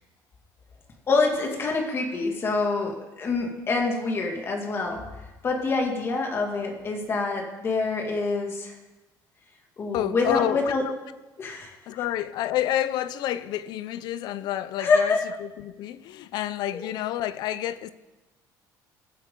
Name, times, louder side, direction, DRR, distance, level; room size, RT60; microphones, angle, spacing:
voice 1, 1.1-8.7 9.8-10.8 11.4-11.7 14.8-15.2 16.7-16.9, left 3 dB, 35° left, 2.3 m, -26 dB
voice 2, 9.9-10.7 11.9-17.9, left 12 dB, 70° left, 0.6 m, -29 dB
20.5 x 8.2 x 3.9 m
cardioid pair, 145°, 7 cm